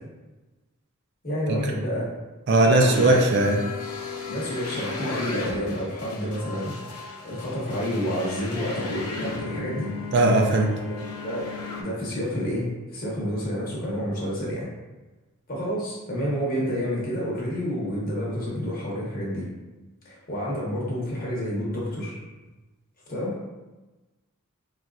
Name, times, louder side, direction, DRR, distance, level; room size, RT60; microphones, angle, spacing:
voice 1, 1.2-2.1 2.6-3.2 4.3-9.9 10.9-11.0 11.2-11.5 11.8-14.7 15.5-19.5 20.0-22.2 23.1-23.3, equal, 40° left, -6 dB, 0.9 m, -29 dB
voice 2, 2.5-3.6 10.1-10.7, right 2 dB, 50° right, 1 dB, 0.4 m, -19 dB
sound 1, 2.6-11.8, left 4 dB, 80° left, 0.5 m, -35 dB
4.1 x 2.4 x 2.3 m, 1.1 s
head